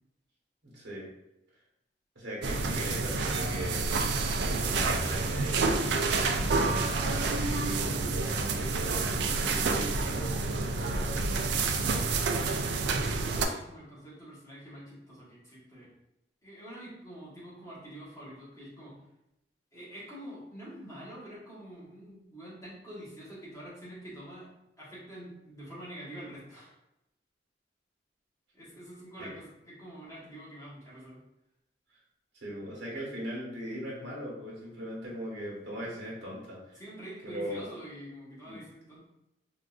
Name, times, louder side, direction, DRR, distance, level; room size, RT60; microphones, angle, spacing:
voice 1, 0.6-1.1 2.1-3.9 4.6-11.4 29.2-29.3 31.9-32.0 32.4-36.8 37.2-37.6 38.4-38.6, equal, 85° right, -6 dB, 1.0 m, -39 dB
sound 1, 2.4-13.4, right 3 dB, 70° right, 0.3 m, -29 dB
voice 2, 12.6-15.9 16.4-19.0 19.7-24.5 24.8-26.7 28.5-31.2 35.8-36.1 36.7-39.1, right 1 dB, 15° left, -9 dB, 1.1 m, -46 dB
3.7 x 2.3 x 2.3 m, 0.88 s
head